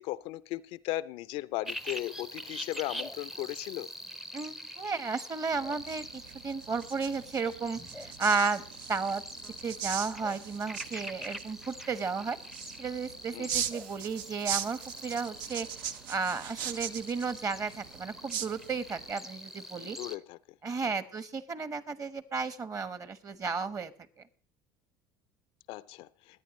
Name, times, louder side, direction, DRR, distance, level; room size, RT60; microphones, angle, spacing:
voice 1, 0.0-3.9 13.3-13.5 19.8-20.4 20.8-21.0 25.7-26.1, left 16 dB, 60° left, 0.5 m, -36 dB
sound 1, 1.7-20.2, equal, ahead, 0.6 m, -44 dB
voice 2, 4.3-8.6 8.9-9.2 9.6-12.4 12.8-15.7 16.1-20.0 20.6-23.9, right 5 dB, 35° right, 1.2 m, -33 dB
sound 2, 5.5-19.1, right 9 dB, 75° right, 0.6 m, -40 dB
21.0 x 8.8 x 3.1 m
hypercardioid pair, 70°, 11 cm